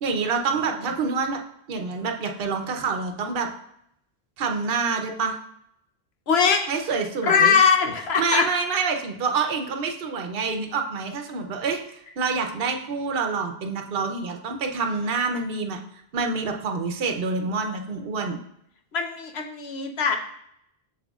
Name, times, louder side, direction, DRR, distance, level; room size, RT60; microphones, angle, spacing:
voice 1, 0.0-1.4 1.7-3.5 4.4-5.3 6.7-7.5 8.2-11.8 12.2-15.8 16.1-18.4, right 4 dB, 65° right, 4 dB, 0.9 m, -27 dB
voice 2, 6.3-6.7 7.2-8.5 18.9-20.2, left 6 dB, 80° left, 4 dB, 1.1 m, -21 dB
7.8 x 6.7 x 2.4 m, 0.74 s
omnidirectional pair, 1.0 m